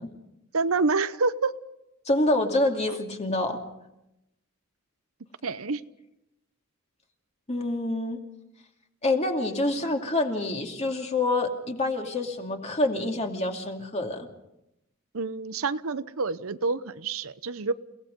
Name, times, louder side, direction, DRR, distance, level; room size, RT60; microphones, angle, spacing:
voice 1, 0.5-1.5 2.9-3.0 5.4-5.8 15.1-17.7, right 4 dB, 75° right, 13 dB, 0.8 m, -27 dB
voice 2, 2.1-3.6 7.5-8.2 9.0-14.3, left 2 dB, 30° left, 3 dB, 2.5 m, -27 dB
30.0 x 17.5 x 5.4 m, 0.87 s
head